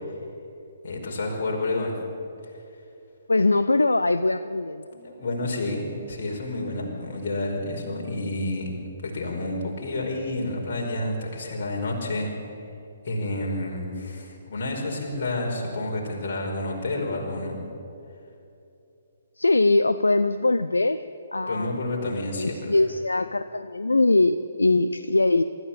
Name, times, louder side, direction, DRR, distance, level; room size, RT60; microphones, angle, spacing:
voice 1, 0.8-2.0 4.9-8.7 9.0-12.3 13.0-17.6 21.5-22.8, left 2 dB, 45° left, 0 dB, 5.1 m, -29 dB
voice 2, 3.3-4.8 19.4-21.0 21.3-21.8 22.4-25.4, left 2 dB, 75° left, 12 dB, 0.6 m, -22 dB
24.0 x 14.0 x 8.8 m, 2.8 s
figure-of-eight pair, 130°, 0 cm